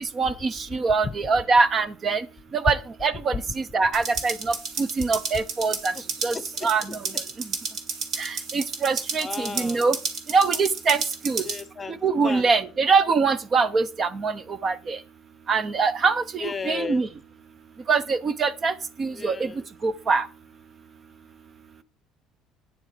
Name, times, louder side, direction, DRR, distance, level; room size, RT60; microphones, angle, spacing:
voice 1, 0.2-2.3 2.5-5.9 6.2-6.4 6.6-7.0 8.2-10.0 10.3-11.4 12.0-15.0 15.5-17.1 17.9-18.7 19.0-19.5 19.8-20.3, right 4 dB, 35° right, 0.7 m, -23 dB
sound 1, 3.9-11.6, right 4 dB, 55° right, 2.1 m, -32 dB
voice 2, 9.2-9.9 11.4-12.5 16.4-17.0 19.1-19.6, left 5 dB, 25° left, 0.8 m, -34 dB
9.2 x 7.0 x 5.0 m
cardioid pair, 125°, 0 cm